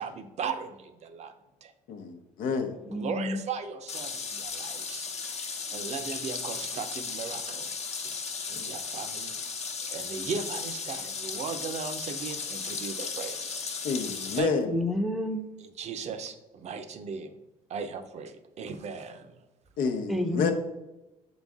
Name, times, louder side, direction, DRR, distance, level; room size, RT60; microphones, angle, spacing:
voice 1, 0.0-1.3 1.6-1.7 2.9-5.1 5.5-7.7 8.5-9.4 9.9-13.6 14.3-14.8 15.6-17.3 17.7-19.4, right 5 dB, 50° right, 0.6 m, -37 dB
voice 2, 1.9-2.8 8.6-8.7 13.8-14.7 19.8-20.5, left 5 dB, 70° left, 0.8 m, -29 dB
voice 3, 2.7-3.5 14.6-15.5 20.1-20.5, left 2 dB, ahead, 0.6 m, -30 dB
sound 1, 3.9-14.4, left 5 dB, 50° left, 1.0 m, -35 dB
6.7 x 4.0 x 3.6 m
cardioid pair, 105°, 15 cm